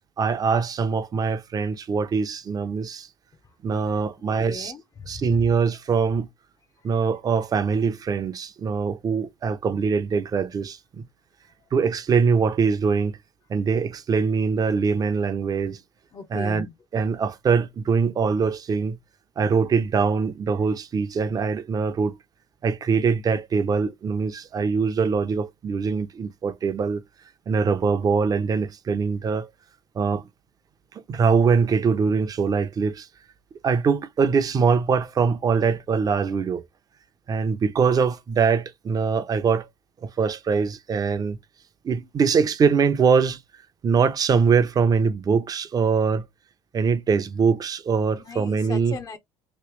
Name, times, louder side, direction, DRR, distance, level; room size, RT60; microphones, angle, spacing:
voice 1, 0.2-3.1 3.6-4.7 5.1-6.3 6.8-11.0 11.7-13.2 13.5-15.8 16.3-16.7 16.9-19.0 19.4-22.2 22.6-27.0 27.5-29.5 29.9-30.3 30.9-33.1 33.6-36.7 37.3-39.7 40.0-41.4 41.8-43.4 43.8-46.3 46.7-49.0, right 5 dB, 35° right, 0.7 m, -23 dB
voice 2, 4.4-5.5 11.6-11.7 16.1-16.7 48.3-49.2, left 5 dB, 35° left, 0.7 m, -37 dB
3.1 x 2.9 x 3.1 m
supercardioid pair, 90°, 11 cm